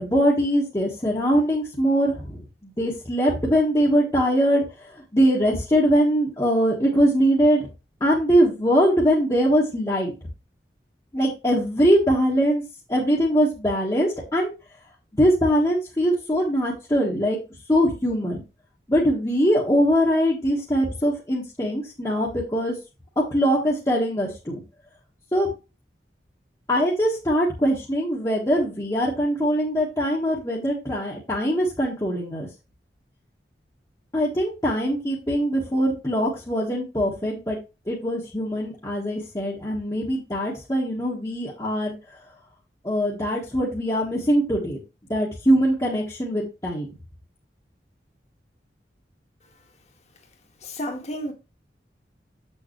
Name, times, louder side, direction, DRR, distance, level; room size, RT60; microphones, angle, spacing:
voice 1, 0.0-7.7 8.0-10.1 11.1-12.6 12.9-14.5 15.2-17.4 17.7-18.4 18.9-22.7 23.3-24.6 25.3-25.5 26.7-32.5 34.1-37.6 37.9-41.9 42.8-44.8 45.1-46.9, equal, 20° left, 1.5 m, -22 dB
voice 2, 50.6-51.3, equal, 40° left, 1.8 m, -31 dB
7.8 x 6.7 x 3.1 m
head